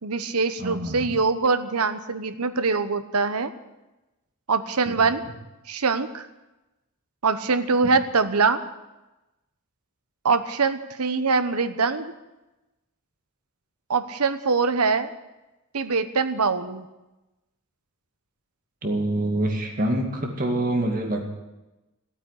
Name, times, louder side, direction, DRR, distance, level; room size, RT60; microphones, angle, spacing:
voice 1, 0.0-3.5 4.5-5.2 5.7-6.3 7.2-8.6 10.2-12.1 13.9-15.1 15.7-16.8, right 4 dB, 85° right, 11 dB, 1.0 m, -23 dB
voice 2, 0.6-1.1 4.9-5.0 7.8-7.9 18.8-21.2, right 1 dB, 40° right, 2 dB, 2.1 m, -26 dB
16.0 x 8.9 x 9.8 m, 1.0 s
head